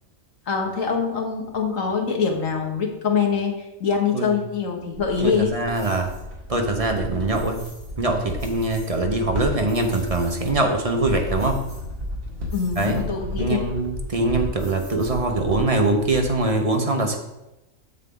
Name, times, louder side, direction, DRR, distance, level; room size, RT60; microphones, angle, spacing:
voice 1, 0.5-5.5 12.5-13.7, left 6 dB, 75° left, 1 dB, 1.7 m, -24 dB
sound 1, 4.9-16.5, left 1 dB, 80° right, 2.1 m, -34 dB
voice 2, 5.2-6.1 6.5-7.6 8.0-11.6 12.8-13.0 13.4-17.2, right 2 dB, 30° right, 3 dB, 0.8 m, -23 dB
sound 2, 5.7-6.2 7.3-7.9 8.3-9.0 9.4-10.6 11.4-12.1 12.5-13.0 14.6-15.4, equal, 45° left, 3.4 m, -48 dB
7.4 x 7.3 x 3.8 m, 0.95 s
omnidirectional pair, 1.4 m